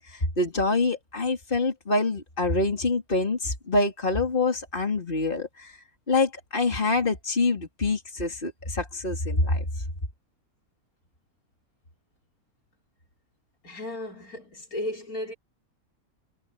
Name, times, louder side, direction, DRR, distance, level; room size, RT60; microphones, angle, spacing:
voice 1, 0.1-5.8 6.1-9.6, left 3 dB, 35° left, 3.9 m, -26 dB
voice 2, 13.6-15.3, left 1 dB, 85° left, 5.8 m, -34 dB
omnidirectional pair, 1.5 m